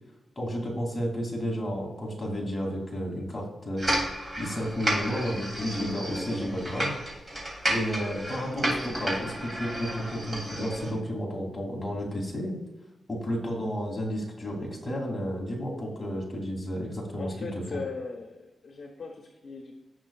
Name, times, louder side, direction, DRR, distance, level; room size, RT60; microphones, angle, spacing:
voice 1, 0.4-4.0 4.4-6.9 7.7-12.6 13.1-17.3 17.7-17.8, equal, 15° left, -2 dB, 2.7 m, -32 dB
sound 1, 3.8-10.9, right 1 dB, 25° right, 3.0 m, -32 dB
voice 2, 17.2-19.7, left 4 dB, 55° left, 1 dB, 1.2 m, -39 dB
17.0 x 6.1 x 2.4 m, 1.0 s
wide cardioid pair, 145°, 0 cm